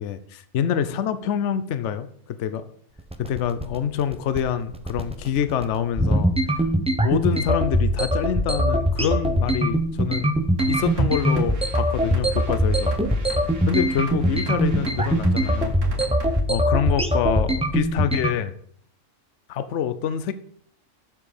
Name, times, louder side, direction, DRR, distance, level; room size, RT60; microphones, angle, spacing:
voice 1, 0.0-2.7 3.2-6.4 7.0-10.3 10.7-12.9 13.3-15.8 16.5-18.5 19.5-20.3, left 8 dB, 70° left, 13 dB, 0.9 m, -26 dB
sound 1, 3.0-18.3, right 1 dB, 10° right, 0.4 m, -22 dB
sound 2, 10.6-16.4, right 1 dB, 70° right, 1.8 m, -38 dB
7.7 x 6.1 x 6.6 m, 0.64 s
omnidirectional pair, 1.3 m